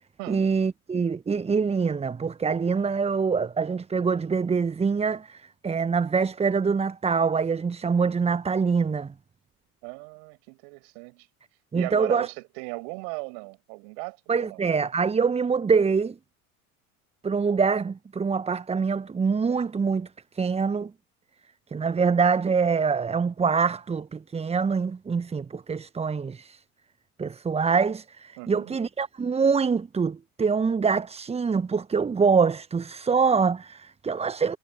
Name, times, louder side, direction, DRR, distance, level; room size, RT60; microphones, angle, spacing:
voice 1, 0.3-9.1 11.7-12.3 14.3-16.2 17.2-20.1 20.3-20.9 21.7-26.6 27.2-34.6, right 5 dB, 15° right, 1.1 m, -25 dB
voice 2, 9.8-11.3 11.7-14.6 28.4-28.8, right 40 dB or more, 55° right, 7.5 m, -37 dB
figure-of-eight pair, 70°, 44 cm